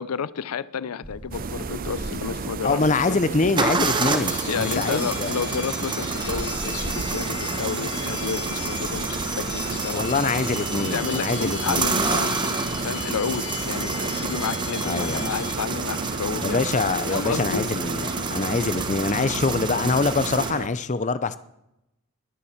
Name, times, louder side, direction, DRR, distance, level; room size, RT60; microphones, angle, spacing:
voice 1, 0.0-2.8 3.1-3.2 4.5-10.2 10.7-12.5 12.8-16.6 17.1-17.7 19.1-19.2, left 6 dB, 90° left, 18 dB, 0.5 m, -31 dB
sound 1, 1.0-2.9 3.6-20.5, right 3 dB, 20° right, 1.1 m, -29 dB
sound 2, 1.3-20.7, right 4 dB, 40° right, 0.5 m, -33 dB
voice 2, 2.6-5.4 9.9-11.9 14.8-15.3 16.4-21.4, left 3 dB, 35° left, 14 dB, 0.6 m, -24 dB
sound 3, 4.0-15.5, left 9 dB, 65° left, 1.5 m, -38 dB
21.0 x 7.1 x 7.2 m, 0.88 s
head